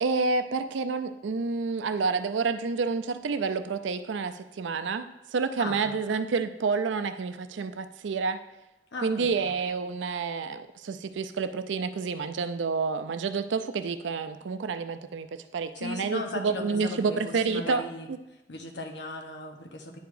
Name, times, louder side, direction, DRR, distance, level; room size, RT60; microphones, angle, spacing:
voice 1, 0.0-8.4 9.0-17.8, right 4 dB, 90° right, 10 dB, 0.4 m, -29 dB
voice 2, 5.6-5.9 8.9-9.5 15.7-18.1 18.5-20.0, left 2 dB, 70° left, 3 dB, 0.9 m, -37 dB
10.0 x 4.7 x 2.6 m, 0.92 s
head